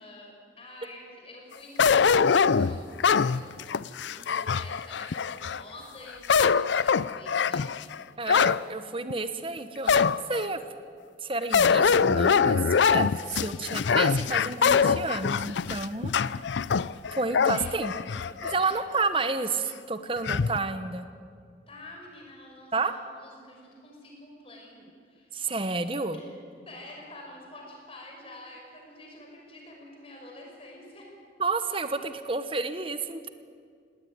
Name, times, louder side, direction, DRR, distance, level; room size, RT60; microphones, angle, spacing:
voice 1, 0.0-7.9 17.5-18.7 21.7-25.3 26.1-26.4 26.6-31.1, left 1 dB, 30° left, 0 dB, 5.7 m, -48 dB
sound 1, 1.8-5.6 6.1-8.6 9.1-9.2 9.9-10.5 11.5-18.6 19.0-19.1 20.3-20.6, left 6 dB, 80° left, 0.5 m, -23 dB
voice 2, 8.2-10.6 11.2-12.6 12.9-16.1 17.1-17.9 18.5-21.1 22.7-23.0 25.3-26.2 31.4-33.3, right 3 dB, 30° right, 10 dB, 1.1 m, -30 dB
18.5 x 18.0 x 9.5 m, 2.2 s
head